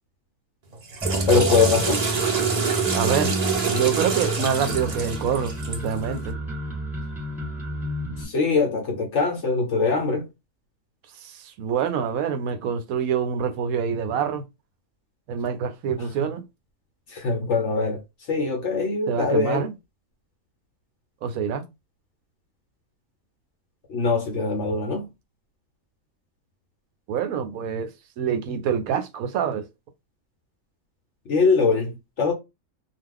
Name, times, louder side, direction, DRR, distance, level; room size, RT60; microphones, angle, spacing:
Water / Toilet flush, 0.7-6.0, right 6 dB, 50° right, 0.4 m, -26 dB
sound 1, 1.0-8.2, equal, ahead, 1.3 m, -30 dB
voice 1, 1.3-2.0 8.2-10.3 16.0-16.1 17.1-18.0 18.3-19.7 23.9-25.1 31.3-32.3, left 4 dB, 60° left, 0.9 m, -22 dB
voice 2, 2.9-3.3 3.7-6.4 11.2-14.4 15.3-16.4 19.1-19.7 21.2-21.6 27.1-27.9 28.2-29.7, right 7 dB, 75° right, 1.0 m, -26 dB
2.3 x 2.3 x 3.6 m
omnidirectional pair, 1.5 m